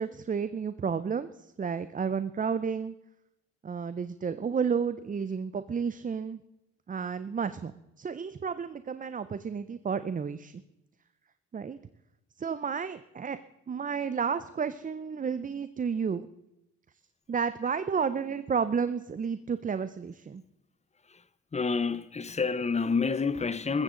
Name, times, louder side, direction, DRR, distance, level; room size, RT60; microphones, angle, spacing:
voice 1, 0.0-2.9 3.6-6.4 6.9-7.7 8.0-10.6 11.5-11.8 12.4-13.4 13.7-16.3 17.3-20.4, right 6 dB, 25° right, 0.6 m, -31 dB
voice 2, 21.5-23.8, left 4 dB, 20° left, 0.8 m, -29 dB
15.0 x 14.5 x 3.8 m
cardioid pair, 90°, 30 cm